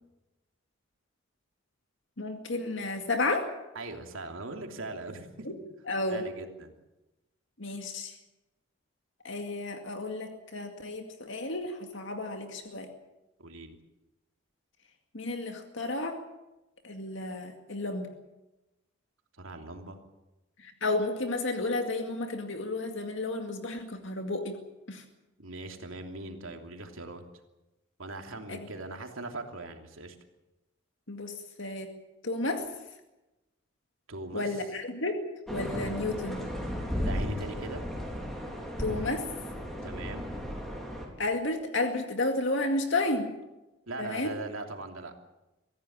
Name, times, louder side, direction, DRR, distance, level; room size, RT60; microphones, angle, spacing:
voice 1, 2.2-3.5 5.5-5.6 5.9-6.2 7.6-8.1 9.2-12.9 15.1-16.2 16.8-18.1 20.6-24.6 24.9-25.0 28.5-28.6 31.1-31.9 32.2-32.7 34.3-35.2 35.5-36.4 38.8-39.3 41.2-43.3 44.0-44.3, left 2 dB, 65° left, 5 dB, 2.2 m, -32 dB
voice 2, 3.7-5.5 6.1-6.7 13.4-13.8 19.4-20.0 25.4-27.2 28.0-30.1 34.1-34.5 37.0-37.8 39.8-40.3 43.9-45.1, right 2 dB, 75° right, 4 dB, 3.0 m, -40 dB
sound 1, 35.5-41.1, equal, ahead, 4.1 m, -35 dB
24.5 x 15.5 x 8.8 m, 1.0 s
head